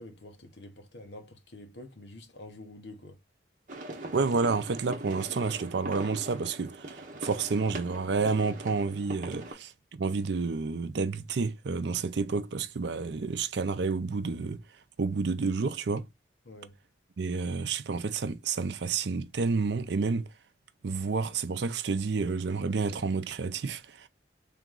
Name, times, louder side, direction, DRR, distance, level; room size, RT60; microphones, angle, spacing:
voice 1, 0.0-3.2 16.4-16.8, left 1 dB, 65° left, 1.0 m, -47 dB
sound 1, 3.7-9.5, right 2 dB, 45° right, 1.0 m, -41 dB
voice 2, 4.1-9.7 10.0-14.6 15.0-16.1 17.2-20.3 20.8-24.1, right 4 dB, 65° right, 0.5 m, -30 dB
3.4 x 3.0 x 3.7 m
head